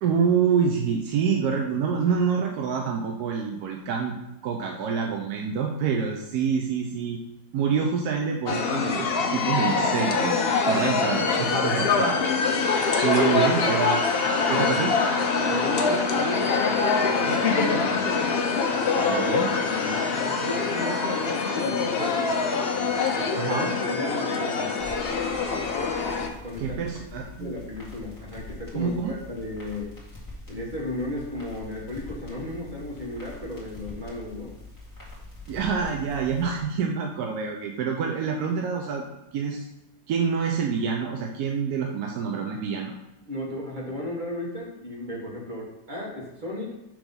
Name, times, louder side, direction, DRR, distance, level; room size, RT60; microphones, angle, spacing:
voice 1, 0.0-4.1 4.4-7.2 7.5-12.2 13.0-14.1 14.5-14.9 18.9-19.5 23.3-23.7 26.6-27.5 28.7-29.2 35.5-39.1 39.3-39.7 40.1-42.9, right 6 dB, 85° right, 2 dB, 1.1 m, -26 dB
sound 1, 8.5-26.3, left 4 dB, 55° left, 0.8 m, -24 dB
voice 2, 15.5-18.1 18.9-19.1 19.5-20.1 20.5-22.3 23.1-23.5 23.8-24.8 26.4-26.8 27.1-29.9 30.5-34.5 35.5-35.9 43.3-46.7, left 1 dB, 30° right, -3 dB, 1.6 m, -34 dB
sound 2, 24.8-36.6, left 2 dB, 15° left, 1.9 m, -44 dB
6.0 x 3.4 x 5.3 m, 0.94 s
omnidirectional pair, 1.6 m